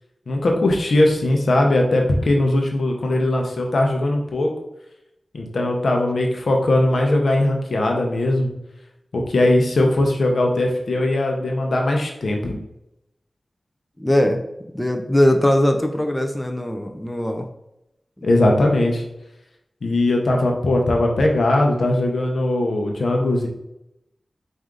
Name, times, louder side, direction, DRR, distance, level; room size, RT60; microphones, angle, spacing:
voice 1, 0.3-4.5 5.3-8.5 9.1-12.6 18.2-19.0 19.8-23.5, left 1 dB, 85° left, 1 dB, 0.8 m, -19 dB
voice 2, 14.0-14.4 14.7-17.5, left 1 dB, 15° left, 4 dB, 0.5 m, -20 dB
4.6 x 2.6 x 3.7 m, 0.84 s
wide cardioid pair, 65°, 0 cm